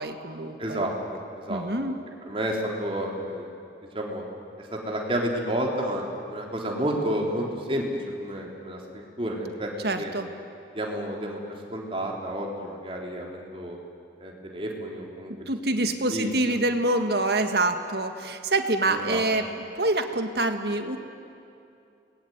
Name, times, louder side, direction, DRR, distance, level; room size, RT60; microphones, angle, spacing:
voice 1, 0.0-0.8 1.5-2.0 9.8-10.3 15.5-21.0, right 2 dB, 65° right, 6 dB, 1.9 m, -26 dB
voice 2, 0.6-1.6 2.3-3.5 3.9-4.2 4.6-7.8 8.2-9.7 10.0-10.1 10.7-11.4 11.7-13.8 14.2-15.5 16.1-16.3 18.9-19.3, right 1 dB, 30° right, 0 dB, 3.9 m, -30 dB
30.0 x 21.0 x 9.6 m, 2.6 s
head